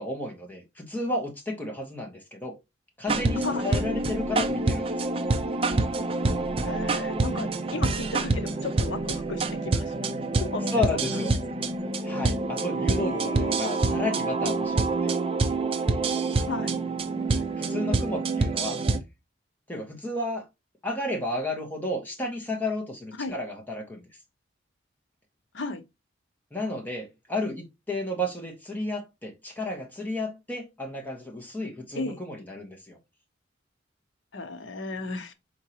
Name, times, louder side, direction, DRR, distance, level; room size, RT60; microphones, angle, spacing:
voice 1, 0.0-2.6 3.0-5.1 10.7-11.3 12.0-15.1 17.3-18.8 19.7-20.4 20.8-24.1 26.5-33.0, left 1 dB, 10° left, 1.3 m, -32 dB
sound 1, 3.1-19.0, right 3 dB, 30° right, 0.4 m, -27 dB
voice 2, 6.6-10.1 10.4-10.7 10.9-11.2 11.5-11.7 12.8-13.6 16.4-16.8 23.2-23.4 25.5-25.8 31.9-32.2 34.3-35.3, left 2 dB, 70° left, 0.8 m, -34 dB
4.4 x 3.7 x 2.9 m
head